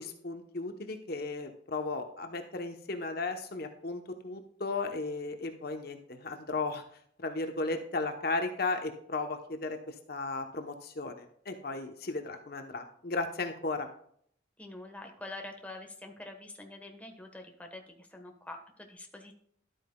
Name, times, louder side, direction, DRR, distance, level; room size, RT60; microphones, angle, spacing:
voice 1, 0.0-6.8 7.2-13.9, left 3 dB, 55° left, 5 dB, 1.0 m, -35 dB
voice 2, 14.6-19.4, left 2 dB, 10° left, 3 dB, 1.3 m, -46 dB
12.0 x 9.0 x 2.3 m, 0.65 s
head